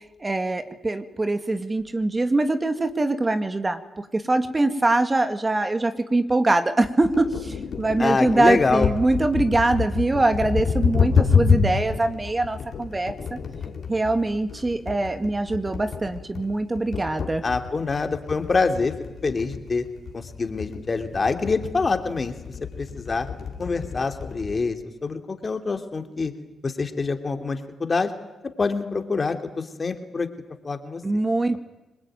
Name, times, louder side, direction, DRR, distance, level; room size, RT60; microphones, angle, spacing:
voice 1, 0.2-13.1 13.9-17.4 31.0-31.6, right 2 dB, 25° right, 8 dB, 2.2 m, -23 dB
sound 1, 7.0-24.6, left 6 dB, 65° left, 3.4 m, -28 dB
voice 2, 8.0-8.9 17.4-18.9 19.2-19.8 20.1-23.3 23.6-24.8 25.0-26.3 26.6-28.1 28.6-30.3 30.6-31.0, left 4 dB, 40° left, 6 dB, 3.0 m, -25 dB
26.0 x 21.0 x 9.3 m, 0.99 s
supercardioid pair, 55°, 0 cm